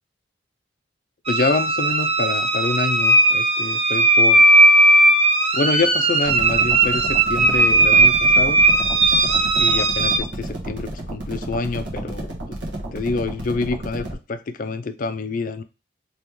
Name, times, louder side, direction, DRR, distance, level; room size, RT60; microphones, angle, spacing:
voice 1, 1.3-4.5 5.5-8.6 9.6-12.6 12.9-15.6, left 3 dB, 45° left, 10 dB, 0.4 m, -26 dB
sound 1, 1.3-10.2, right 2 dB, 30° right, 0.5 m, -17 dB
sound 2, 6.3-14.1, right 1 dB, 70° right, 1.2 m, -32 dB
3.0 x 3.0 x 3.4 m, 0.30 s
head